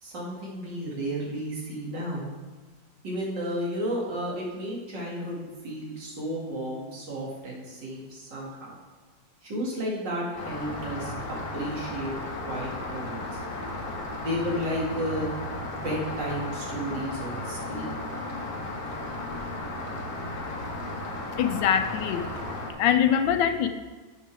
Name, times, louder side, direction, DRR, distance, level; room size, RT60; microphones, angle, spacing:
voice 1, 0.0-2.3 3.0-8.7 9.4-11.1 11.5-12.1 12.4-13.2 14.2-15.3 15.7-17.9, equal, 70° right, -3 dB, 2.7 m, -32 dB
Rain, 10.4-22.7, left 2 dB, 55° left, 1.7 m, -35 dB
voice 2, 21.4-22.3 22.8-23.7, left 9 dB, 75° left, 8 dB, 1.3 m, -23 dB
11.5 x 6.7 x 3.4 m, 1.3 s
omnidirectional pair, 2.0 m